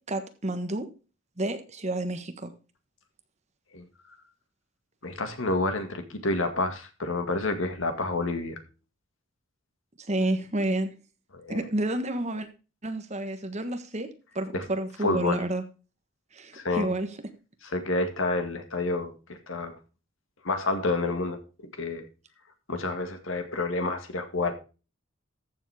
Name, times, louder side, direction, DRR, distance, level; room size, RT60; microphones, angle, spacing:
voice 1, 0.1-0.9 1.4-2.5 10.1-10.9 11.5-12.5 12.8-14.1 14.3-15.6 16.3-17.1, right 1 dB, 35° right, 8 dB, 1.3 m, -30 dB
voice 2, 5.0-8.6 11.3-11.6 14.5-14.6 15.0-15.4 16.5-16.9 17.7-19.7 20.4-21.4 21.8-22.0 22.7-24.5, left 2 dB, 70° left, 7 dB, 2.0 m, -29 dB
14.0 x 7.2 x 3.5 m, 0.33 s
head